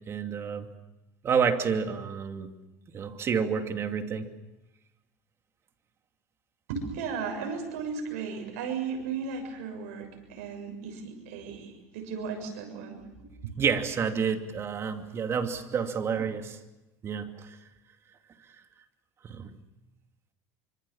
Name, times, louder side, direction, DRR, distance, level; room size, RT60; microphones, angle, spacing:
voice 1, 0.1-0.7 1.2-2.5 2.9-4.3 13.6-16.6 17.0-17.6 19.2-19.5, right 6 dB, 35° right, 6 dB, 2.6 m, -29 dB
voice 2, 6.7-13.6, right 5 dB, 85° right, 5 dB, 6.8 m, -36 dB
26.0 x 25.0 x 7.3 m, 0.99 s
supercardioid pair, 120°, 8 cm